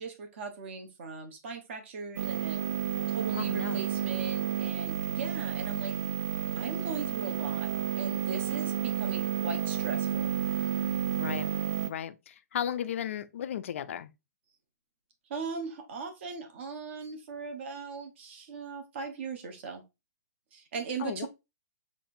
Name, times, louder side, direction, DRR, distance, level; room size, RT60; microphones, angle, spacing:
voice 1, 0.0-2.6 3.1-6.0 6.6-7.7 7.9-10.3 15.3-19.8 20.5-21.3, right 4 dB, 40° right, 0.9 m, -39 dB
sound 1, 2.2-11.9, right 10 dB, 65° right, 0.5 m, -31 dB
voice 2, 3.3-3.8 11.1-11.5 11.8-14.1 21.0-21.3, left 9 dB, 45° left, 0.4 m, -35 dB
5.7 x 2.5 x 2.6 m
hypercardioid pair, 170°, 10 cm